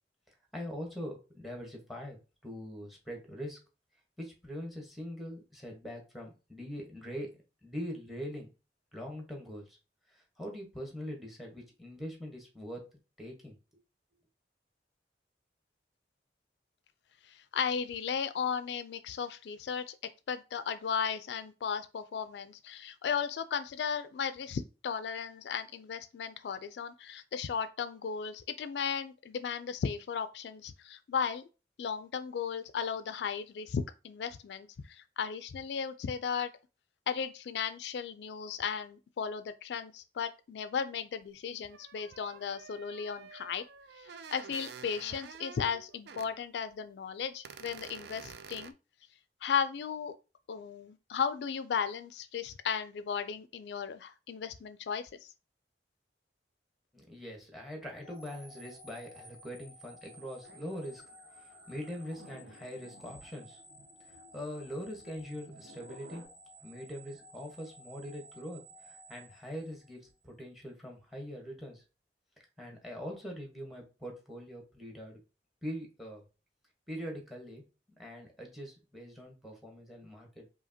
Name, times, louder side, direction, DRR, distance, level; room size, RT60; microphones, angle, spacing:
voice 1, 0.5-2.2 2.4-3.6 4.2-7.3 7.6-8.5 8.9-9.8 10.1-12.8 13.2-13.6 56.9-61.0 61.3-63.6 64.1-66.3 66.6-71.8 72.6-75.2 75.6-76.2 76.9-77.7 78.0-80.5, equal, ahead, 1.1 m, -43 dB
voice 2, 17.3-20.0 20.3-31.4 31.8-36.5 37.1-43.6 44.0-48.7 49.4-50.1 50.5-55.3, left 6 dB, 70° left, 0.3 m, -35 dB
sound 1, 41.2-41.3 41.7-46.3 46.7-46.8 47.4-48.7, right 6 dB, 65° right, 0.3 m, -49 dB
sound 2, 58.0-70.2, left 1 dB, 35° right, 1.4 m, -55 dB
sound 3, 60.4-66.3, right 1 dB, 80° right, 1.0 m, -57 dB
4.9 x 2.8 x 2.7 m
head